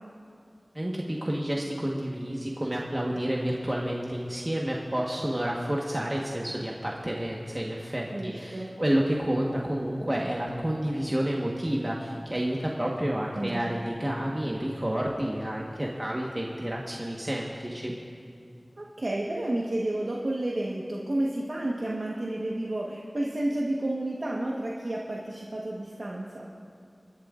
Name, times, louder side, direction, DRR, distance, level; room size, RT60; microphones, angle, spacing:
voice 1, 0.7-17.9, right 1 dB, 30° right, -3 dB, 1.3 m, -30 dB
voice 2, 8.1-8.7 13.3-13.7 18.8-26.5, right 1 dB, 75° right, -4 dB, 1.3 m, -31 dB
28.0 x 11.5 x 2.5 m, 2.5 s
wide cardioid pair, 45°, 0 cm